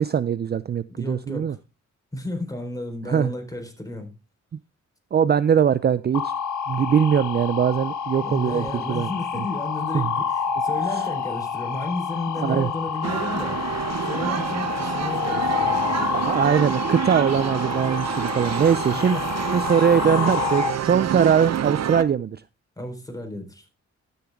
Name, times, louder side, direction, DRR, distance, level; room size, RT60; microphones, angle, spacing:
voice 1, 0.0-1.6 3.1-3.3 5.1-6.3 6.7-9.1 9.4-9.5 9.9-10.1 10.9-11.0 12.4-12.7 16.1-19.2 19.5-22.4, right 8 dB, 35° right, 0.4 m, -21 dB
voice 2, 0.9-1.6 2.1-4.1 8.2-16.2 18.9-19.2 22.8-23.7, left 1 dB, 10° left, 4.1 m, -33 dB
sound 1, 6.1-20.7, left 7 dB, 80° left, 1.5 m, -28 dB
sound 2, 13.0-22.0, right 10 dB, 60° right, 0.7 m, -28 dB
13.0 x 7.1 x 3.6 m
cardioid pair, 75°, 29 cm